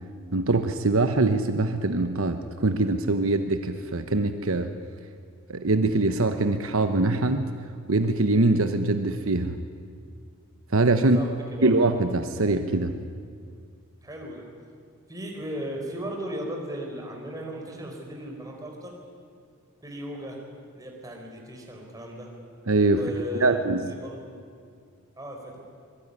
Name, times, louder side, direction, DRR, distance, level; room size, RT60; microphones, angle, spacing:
voice 1, 0.3-4.7 5.5-7.5 7.9-9.6 10.7-11.2 11.6-12.9 22.7-23.0 23.4-23.9, right 2 dB, 65° right, 8 dB, 1.1 m, -23 dB
voice 2, 11.1-11.7 14.0-14.4 15.1-18.9 19.8-20.4 20.7-22.3 22.8-24.4 25.2-25.6, equal, 15° right, 1 dB, 4.7 m, -36 dB
25.0 x 22.0 x 9.8 m, 2.2 s
head